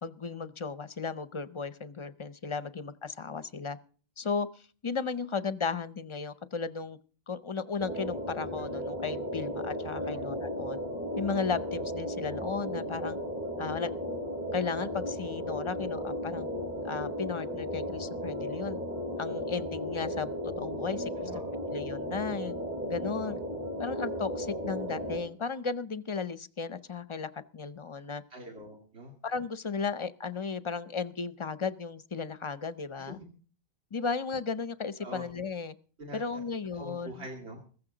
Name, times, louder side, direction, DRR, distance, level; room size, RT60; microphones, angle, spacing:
voice 1, 0.0-3.8 4.2-7.0 7.3-10.8 11.2-13.2 13.6-13.9 14.5-16.5 16.8-18.8 19.2-21.3 21.7-22.5 22.9-23.4 23.8-28.2 29.2-33.2 33.9-35.8 36.1-37.2, left 5 dB, 35° left, 14 dB, 0.6 m, -35 dB
sound 1, 7.8-25.2, equal, 40° right, 5.2 m, -35 dB
voice 2, 28.3-29.1 33.0-33.3 35.0-35.3 36.0-36.4 36.7-37.6, equal, 90° right, 0 dB, 2.5 m, -44 dB
15.0 x 15.0 x 3.9 m, 0.42 s
omnidirectional pair, 1.1 m